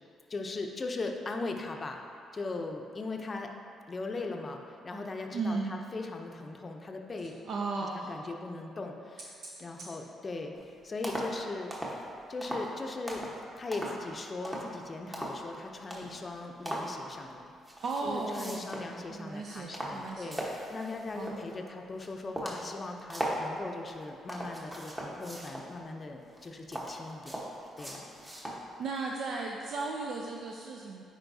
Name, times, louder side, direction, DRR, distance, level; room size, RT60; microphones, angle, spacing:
voice 1, 0.3-2.0 2.3-3.5 3.9-7.3 7.9-9.3 9.6-10.6 10.8-11.7 12.3-13.2 13.6-17.4 18.0-27.4 27.8-28.1, left 3 dB, 35° left, 3 dB, 0.6 m, -39 dB
voice 2, 5.3-5.7 7.5-8.1 17.8-18.7 19.1-20.4 21.1-21.5 28.8-31.0, right 3 dB, 65° right, 0 dB, 0.4 m, -35 dB
sound 1, 10.5-10.7 11.0-11.4 11.7-12.0 12.4-12.7 13.1-13.4 13.7-14.1 14.4-14.8 15.1-15.5 15.9-16.2 16.7-16.9 17.6-18.9 19.3-21.5 22.0-22.1 22.4-23.4 23.9-25.7 26.3-28.6 29.1-29.2, right 1 dB, 20° right, 1.1 m, -38 dB
8.8 x 4.4 x 2.7 m, 2.5 s
cardioid pair, 90°, 0 cm